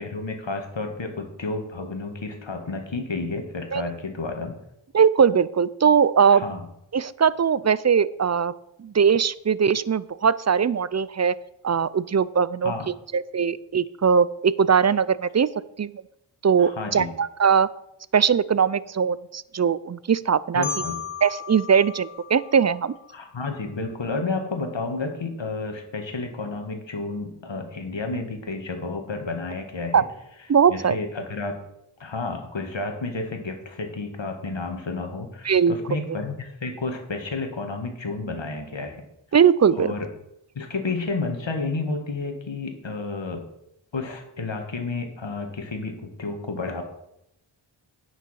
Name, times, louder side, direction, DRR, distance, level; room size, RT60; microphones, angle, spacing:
voice 1, 0.0-4.5 6.3-6.6 12.6-12.9 16.6-17.1 20.5-21.0 23.1-30.1 30.7-31.6 32.0-39.0 39.8-40.1 40.6-43.4 43.9-46.8, left 3 dB, 65° left, 5 dB, 1.8 m, -31 dB
voice 2, 4.9-6.4 6.9-8.5 8.8-11.3 11.6-12.7 13.1-15.5 15.8-15.9 16.4-17.7 18.1-20.7 21.2-22.9 29.9-30.0 30.5-31.0 35.4-35.7 39.3-39.9, right 7 dB, 35° right, 18 dB, 0.4 m, -20 dB
Marimba xylophone, 20.6-23.5, left 6 dB, 85° left, 1.5 m, -36 dB
9.3 x 6.4 x 6.4 m, 0.80 s
wide cardioid pair, 55°, 47 cm